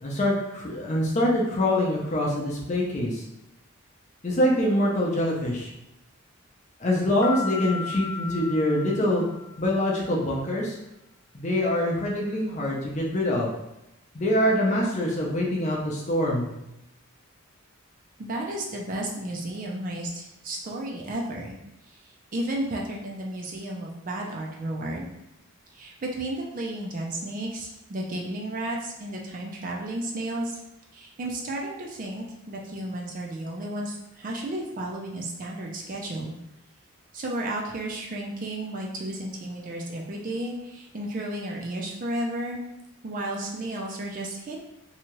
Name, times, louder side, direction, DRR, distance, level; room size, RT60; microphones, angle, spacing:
voice 1, 0.0-3.2 4.2-5.7 6.8-9.2 9.6-10.8 11.3-13.5 14.1-16.5, left 1 dB, 35° left, -3 dB, 0.5 m, -24 dB
sound 1, 7.2-9.9, left 5 dB, 80° left, 0.5 m, -36 dB
voice 2, 18.2-21.5 21.9-25.1 25.7-30.6 30.9-36.3 37.1-42.6 43.0-44.6, right 1 dB, 40° right, -2 dB, 0.4 m, -33 dB
2.8 x 2.3 x 3.0 m, 0.88 s
head